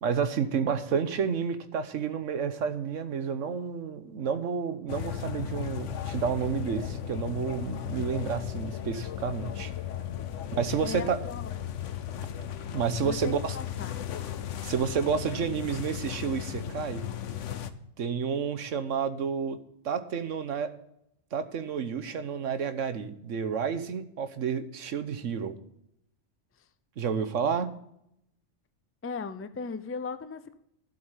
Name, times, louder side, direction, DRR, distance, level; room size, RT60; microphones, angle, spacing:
voice 1, 0.0-9.7 10.5-11.2 12.7-13.6 14.6-17.0 18.0-19.6 19.8-20.7 21.3-25.5 27.0-27.7, right 6 dB, 90° right, 11 dB, 1.3 m, -30 dB
sound 1, 4.9-17.7, left 10 dB, 80° left, 1.1 m, -36 dB
voice 2, 10.8-11.5 13.0-14.0 29.0-30.5, left 5 dB, 20° left, 12 dB, 0.4 m, -37 dB
11.5 x 7.9 x 5.6 m, 0.76 s
omnidirectional pair, 1.3 m